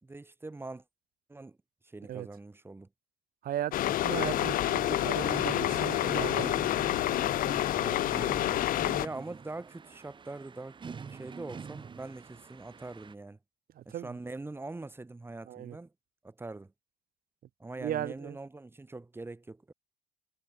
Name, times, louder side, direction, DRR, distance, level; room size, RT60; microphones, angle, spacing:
voice 1, 0.0-0.8 1.3-1.6 1.8-2.9 7.8-8.0 9.0-13.4 13.8-15.9 16.2-16.7 17.6-19.7, right 2 dB, 15° right, 1.7 m, -43 dB
voice 2, 3.4-6.7 13.7-14.1 15.4-15.8 17.8-18.4, right 12 dB, 60° right, 1.7 m, -37 dB
sound 1, 3.7-9.1, left 14 dB, 55° left, 0.5 m, -28 dB
sound 2, 4.1-13.1, right 5 dB, 30° right, 1.2 m, -44 dB
cardioid pair, 110°, 17 cm